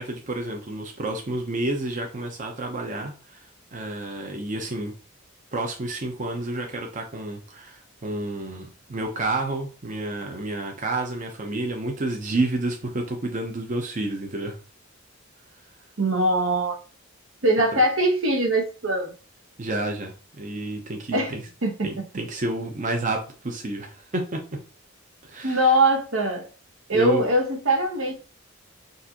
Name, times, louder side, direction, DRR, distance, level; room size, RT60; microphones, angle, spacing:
voice 1, 0.0-4.9 5.5-14.6 17.7-17.8 19.6-21.4 21.8-24.4 25.2-25.7 26.9-27.3, right 2 dB, 40° right, 0.7 m, -30 dB
voice 2, 16.0-16.8 17.4-19.1 21.1-21.3 21.6-21.9 25.4-26.5 26.9-28.2, right 1 dB, 75° right, 1.1 m, -22 dB
6.4 x 2.6 x 2.9 m
head